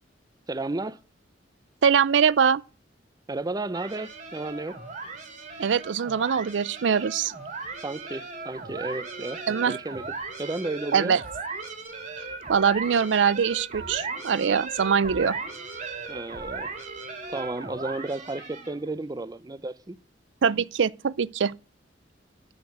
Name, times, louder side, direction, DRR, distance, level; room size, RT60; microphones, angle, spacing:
voice 1, 0.5-1.0 3.3-4.8 7.8-10.1 10.4-11.1 16.1-16.7 17.3-20.0, right 2 dB, 20° right, 0.6 m, -33 dB
voice 2, 1.8-2.6 5.6-7.3 9.5-9.8 10.9-11.2 12.5-15.4 20.4-21.5, right 7 dB, 85° right, 0.5 m, -23 dB
sound 1, 3.7-18.9, right 4 dB, 45° right, 3.3 m, -37 dB
11.5 x 6.5 x 7.9 m
head